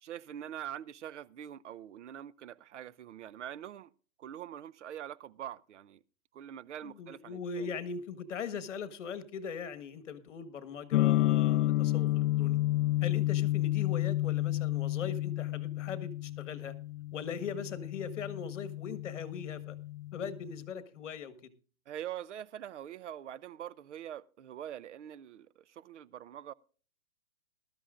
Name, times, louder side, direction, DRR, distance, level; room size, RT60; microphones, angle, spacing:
voice 1, 0.0-3.9 4.2-6.0 6.3-7.7 21.9-26.5, right 10 dB, 60° right, 0.6 m, -44 dB
voice 2, 6.8-12.1 12.4-12.6 13.0-16.7 17.1-19.7 20.1-21.5, left 6 dB, 60° left, 1.6 m, -40 dB
sound 1, 10.9-20.7, left 16 dB, 85° left, 0.5 m, -31 dB
19.5 x 13.0 x 2.5 m
hypercardioid pair, 165°, 41 cm